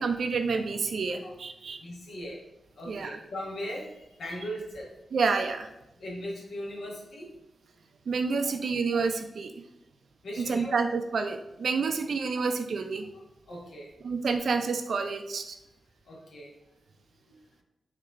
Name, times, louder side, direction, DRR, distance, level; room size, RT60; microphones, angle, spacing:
voice 1, 0.0-1.8 2.9-3.2 5.1-5.7 8.1-9.5 10.4-13.1 14.0-15.6, right 4 dB, 75° right, 6 dB, 0.5 m, -29 dB
voice 2, 1.8-2.4 2.8-4.9 6.0-7.3 8.4-8.5 8.9-9.1 10.2-10.7 13.5-13.9 16.1-16.5 17.3-17.4, equal, 80° left, -2 dB, 1.3 m, -39 dB
4.6 x 2.8 x 3.6 m, 0.90 s
cardioid pair, 70°, 0 cm